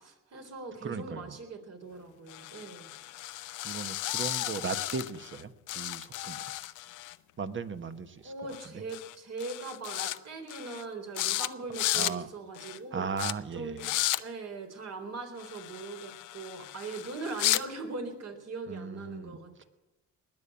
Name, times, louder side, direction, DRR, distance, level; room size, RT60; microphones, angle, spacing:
voice 1, 0.0-2.9 8.2-13.1 13.5-13.9 14.2-19.7, right 3 dB, 55° right, 4 dB, 3.8 m, -40 dB
voice 2, 0.8-1.4 3.6-6.4 7.4-8.8 11.9-12.3 12.9-13.9 18.7-19.6, right 5 dB, 40° right, 11 dB, 1.3 m, -37 dB
sound 1, 2.3-5.4 5.7-7.2 8.5-8.7 8.9-9.2 9.4-10.2 10.5-10.8 11.2-11.5 11.7-12.1 12.6-12.8 13.2-13.3 13.8-14.2 15.4-17.6, left 16 dB, 85° left, 0.7 m, -34 dB
20.0 x 7.1 x 8.8 m, 1.0 s
cardioid pair, 90°, 30 cm